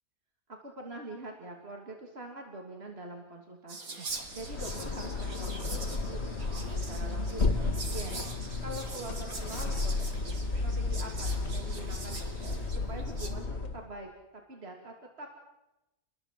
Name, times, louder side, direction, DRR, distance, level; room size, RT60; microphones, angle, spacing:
voice 1, 0.5-6.2 6.6-9.9 10.2-13.5 13.7-14.1 14.5-15.3, right 2 dB, 45° right, 1 dB, 2.9 m, -44 dB
Whispering, 3.7-13.3, right 3 dB, 85° right, 2.9 m, -43 dB
sound 1, 4.1-12.7, right 3 dB, 10° left, 7.0 m, -51 dB
sound 2, 4.3-13.9, left 3 dB, 50° left, 2.0 m, -33 dB
29.5 x 21.0 x 7.6 m, 0.98 s
omnidirectional pair, 1.5 m